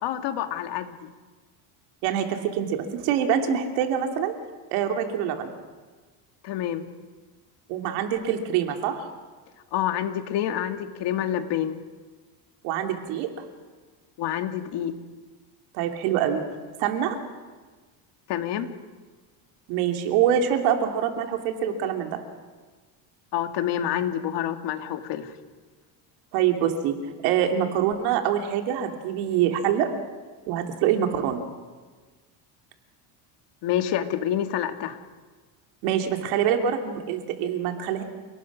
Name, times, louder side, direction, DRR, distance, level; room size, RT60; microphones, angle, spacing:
voice 1, 0.0-1.0 6.4-6.8 9.7-11.8 14.2-14.9 18.3-18.7 23.3-25.3 33.6-35.0, left 10 dB, 60° left, 7 dB, 2.0 m, -27 dB
voice 2, 2.0-4.3 4.7-5.5 7.7-9.0 12.6-13.4 15.7-16.4 16.8-17.2 19.7-22.2 26.3-27.0 27.2-29.9 30.5-31.4 35.8-38.0, right 9 dB, 90° right, 4 dB, 3.1 m, -25 dB
29.0 x 18.5 x 6.3 m, 1.4 s
cardioid pair, 145°, 47 cm